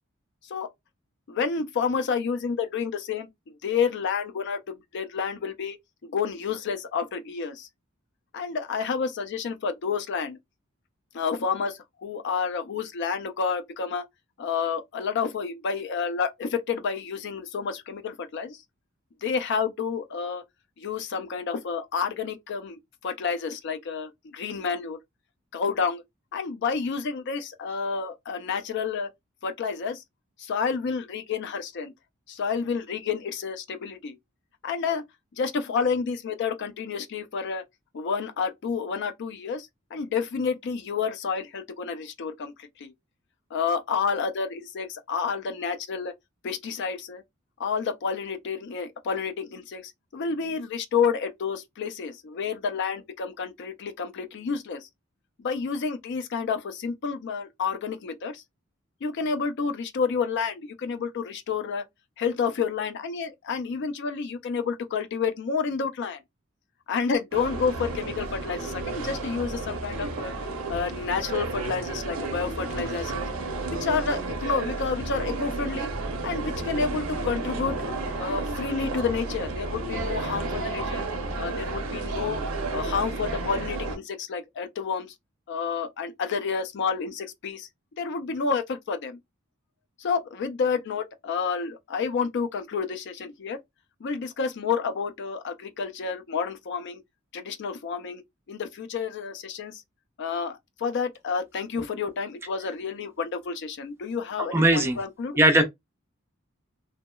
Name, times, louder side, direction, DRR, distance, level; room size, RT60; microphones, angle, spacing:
voice 1, 1.3-3.3 3.6-5.8 6.0-7.7 8.3-10.4 11.1-14.0 14.4-18.6 19.2-20.4 20.8-25.0 25.5-26.0 26.3-29.1 29.4-30.0 30.4-31.9 32.3-34.2 34.6-35.0 35.4-37.6 37.9-42.9 43.5-46.1 46.4-47.2 47.6-54.9 55.4-58.4 59.0-61.8 62.2-66.2 66.9-70.3 70.7-73.3 73.7-75.9 76.2-77.8 78.2-81.0 81.4-82.4 82.7-85.1 85.5-87.7 88.0-89.2 90.0-93.6 94.0-97.0 97.3-98.2 98.5-99.8 100.2-105.4, left 5 dB, 55° left, 0.4 m, -29 dB
sound 1, 67.3-84.0, right 3 dB, 85° right, 0.7 m, -32 dB
voice 2, 104.5-105.0 105.4-105.6, right 1 dB, 10° right, 0.4 m, -19 dB
2.7 x 2.0 x 2.2 m
head